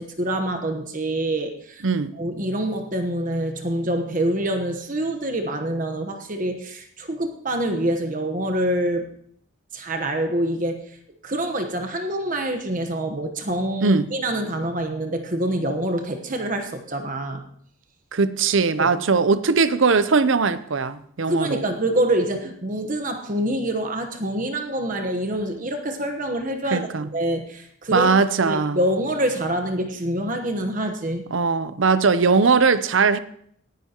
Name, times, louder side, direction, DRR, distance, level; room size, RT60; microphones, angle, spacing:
voice 1, 0.0-1.8 2.2-9.1 9.7-11.0 11.2-17.4 18.8-18.9 21.2-28.1 28.4-31.3, right 1 dB, 40° right, 1.1 m, -26 dB
voice 2, 1.8-2.1 13.8-14.1 18.1-21.6 26.7-27.1 27.9-28.8 31.3-33.2, right 4 dB, 65° right, 0.6 m, -20 dB
18.5 x 10.5 x 3.0 m
head